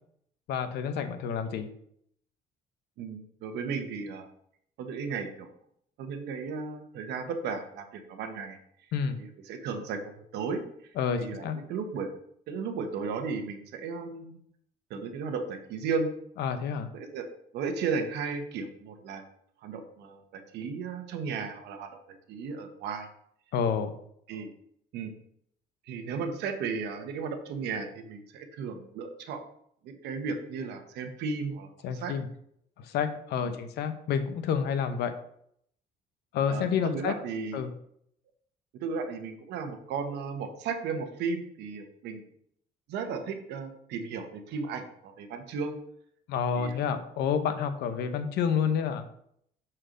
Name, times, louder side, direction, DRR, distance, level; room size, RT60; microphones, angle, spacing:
voice 1, 0.5-1.7 8.9-9.2 11.0-11.6 16.4-16.9 23.5-23.9 31.8-32.3 32.8-35.1 36.3-37.1 37.5-37.7 46.3-49.1, left 7 dB, 75° left, 10 dB, 0.7 m, -29 dB
voice 2, 3.0-4.3 4.8-5.5 6.0-8.6 9.2-10.9 11.2-12.1 12.5-14.4 14.9-16.1 16.9-17.3 17.5-19.2 19.6-23.1 24.3-24.5 24.9-25.1 25.9-29.4 29.8-32.1 33.4-33.6 36.5-37.6 38.7-42.3 42.9-45.8 46.6-46.9, right 5 dB, 80° right, 6 dB, 1.0 m, -35 dB
6.6 x 4.4 x 3.7 m, 0.69 s
cardioid pair, 110°, 17 cm